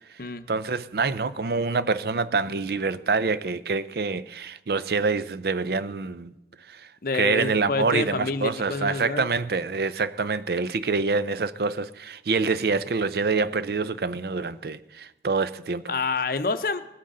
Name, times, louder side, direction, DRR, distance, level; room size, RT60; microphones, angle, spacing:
voice 1, 0.5-6.3 6.7-6.9 7.1-15.9, right 4 dB, 60° right, 0.5 m, -26 dB
voice 2, 7.0-9.3 15.9-16.9, left 4 dB, 50° left, 0.7 m, -28 dB
19.5 x 9.4 x 3.8 m
head